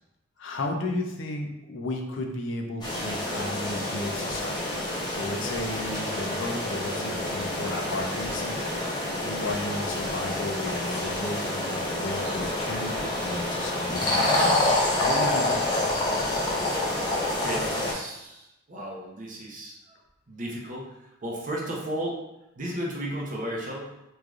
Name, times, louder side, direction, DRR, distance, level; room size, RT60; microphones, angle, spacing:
voice 1, 0.4-4.7 5.1-15.7, left 2 dB, 70° left, 2 dB, 0.5 m, -34 dB
sound 1, 2.8-17.9, left 1 dB, 20° left, 0.6 m, -28 dB
voice 2, 16.7-19.9 20.3-22.2 22.6-23.9, right 1 dB, 40° right, -2 dB, 0.6 m, -35 dB
3.1 x 2.4 x 2.4 m, 0.89 s
head